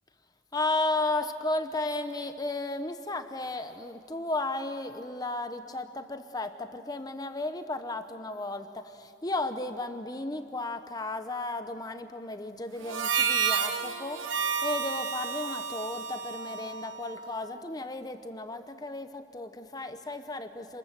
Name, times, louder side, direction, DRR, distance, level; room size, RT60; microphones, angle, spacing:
voice 1, 0.5-14.2 14.6-20.8, left 2 dB, 20° left, 8 dB, 0.8 m, -34 dB
Harmonica, 12.8-17.4, right 6 dB, 85° right, 1.3 m, -31 dB
28.0 x 21.0 x 7.5 m, 2.3 s
head